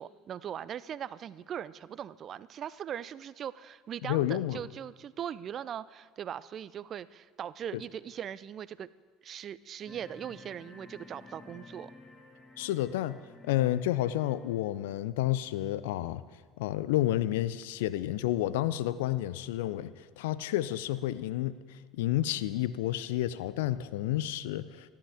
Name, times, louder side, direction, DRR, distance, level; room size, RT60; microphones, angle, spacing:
voice 1, 0.0-8.9 9.2-11.9, right 9 dB, 45° right, 18 dB, 0.5 m, -40 dB
voice 2, 4.0-4.6 12.6-13.2 13.4-16.2 16.6-21.6 21.9-24.9, left 14 dB, 70° left, 16 dB, 0.5 m, -30 dB
sound 1, 9.8-15.0, left 3 dB, 25° left, 1.6 m, -53 dB
25.5 x 12.0 x 3.6 m, 1.5 s
hypercardioid pair, 65°, 0 cm